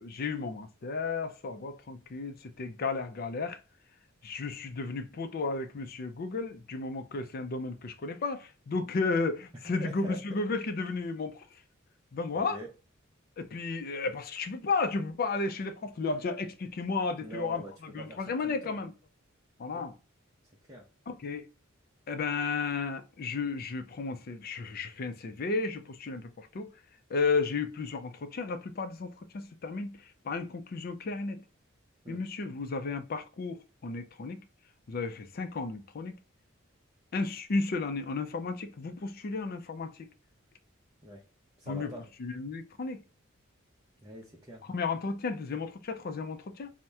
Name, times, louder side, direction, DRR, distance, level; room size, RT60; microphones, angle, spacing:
voice 1, 0.0-3.6 4.2-11.4 12.1-12.6 13.4-17.6 17.9-18.9 19.6-19.9 21.1-21.5 22.1-26.7 27.1-31.4 32.1-34.4 34.9-36.1 37.1-40.1 41.7-41.9 42.2-43.0 44.7-46.7, left 4 dB, 45° left, 0.4 m, -33 dB
voice 2, 9.6-10.2 12.3-12.7 17.2-18.8 19.7-19.9 20.7-20.9 32.0-32.2 41.0-41.3 41.6-42.0 44.0-44.7, right 1 dB, 15° right, 0.6 m, -44 dB
2.8 x 2.1 x 3.4 m
head